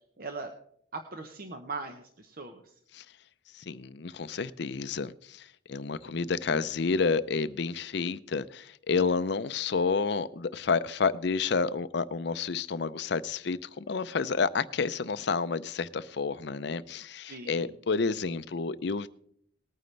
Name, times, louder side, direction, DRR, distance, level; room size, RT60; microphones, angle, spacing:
voice 1, 0.2-0.5 0.9-2.8 6.0-6.6 17.3-17.7, right 3 dB, 45° right, 0.8 m, -41 dB
voice 2, 3.5-19.1, left 4 dB, 60° left, 0.5 m, -30 dB
19.5 x 9.2 x 3.3 m
head